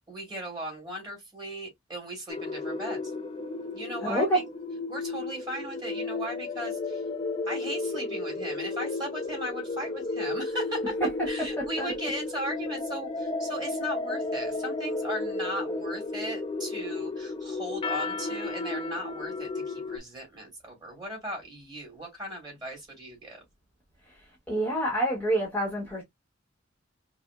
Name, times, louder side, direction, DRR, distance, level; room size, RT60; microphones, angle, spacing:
voice 1, 0.0-3.0 3.7-4.4 4.9-7.0 7.5-10.9 11.3-23.4, equal, 25° right, 2.4 m, -37 dB
sound 1, 2.3-20.0, left 3 dB, 25° left, 0.4 m, -33 dB
voice 2, 4.0-4.4 11.8-11.9 24.5-26.0, right 1 dB, 10° left, 1.0 m, -27 dB
4.9 x 2.1 x 2.3 m
head